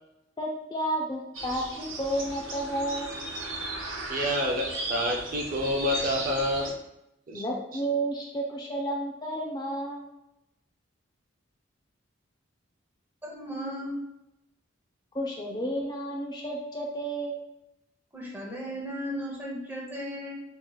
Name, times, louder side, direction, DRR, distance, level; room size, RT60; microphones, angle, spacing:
voice 1, 0.4-3.2 7.3-10.1 15.1-17.4, right 1 dB, 20° left, -2 dB, 0.4 m, -31 dB
sound 1, 1.3-6.7, right 2 dB, 75° right, 0.8 m, -36 dB
voice 2, 4.1-6.7 7.3-7.4, equal, 45° right, -1 dB, 0.5 m, -28 dB
voice 3, 13.2-14.0 18.1-20.3, equal, 10° right, -3 dB, 0.8 m, -35 dB
4.5 x 2.8 x 2.3 m, 0.88 s
head